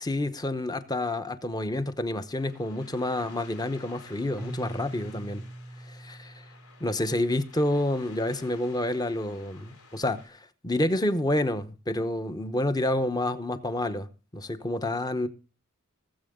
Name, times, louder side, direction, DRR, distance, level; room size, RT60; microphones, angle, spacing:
voice 1, 0.0-5.4 5.9-6.4 6.8-14.1 14.3-15.3, left 1 dB, 15° left, 0.8 m, -29 dB
sound 1, 2.3-10.3, left 4 dB, 85° left, 3.6 m, -53 dB
Keyboard (musical), 4.4-7.3, right 1 dB, 10° right, 0.5 m, -42 dB
19.5 x 7.7 x 3.6 m
head